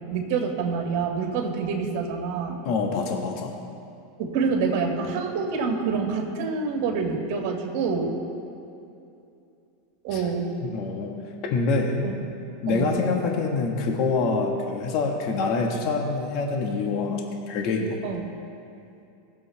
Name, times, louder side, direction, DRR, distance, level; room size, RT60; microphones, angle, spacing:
voice 1, 0.1-2.6 4.2-8.2 10.0-10.6 12.0-12.1 12.7-13.0 18.0-18.3, right 5 dB, 60° right, 1 dB, 2.4 m, -27 dB
voice 2, 2.6-3.6 10.1-10.2 10.6-11.1 11.4-12.0 12.6-17.9, left 4 dB, 55° left, 1 dB, 1.7 m, -26 dB
20.0 x 7.6 x 3.5 m, 2.6 s
hypercardioid pair, 110°, 0 cm